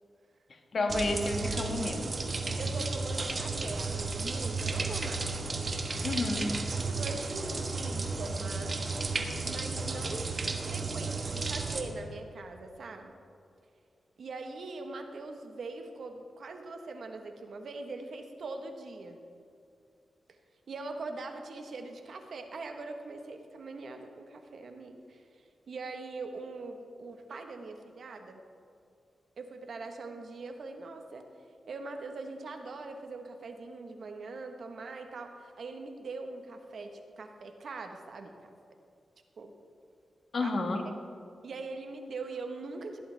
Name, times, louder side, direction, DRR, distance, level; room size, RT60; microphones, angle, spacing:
voice 1, 0.7-2.2 6.0-6.5 40.3-40.8, left 2 dB, 55° left, 4 dB, 1.4 m, -30 dB
sound 1, 0.9-11.8, right 3 dB, 45° right, 1.2 m, -33 dB
voice 2, 2.6-5.5 6.8-8.8 9.4-10.3 10.6-13.1 14.2-19.2 20.7-28.4 29.4-31.3 31.7-38.3 39.4-39.5 40.4-40.8 41.4-43.0, right 3 dB, 70° right, 5 dB, 1.2 m, -42 dB
15.0 x 11.5 x 3.4 m, 2.4 s
cardioid pair, 80°, 0 cm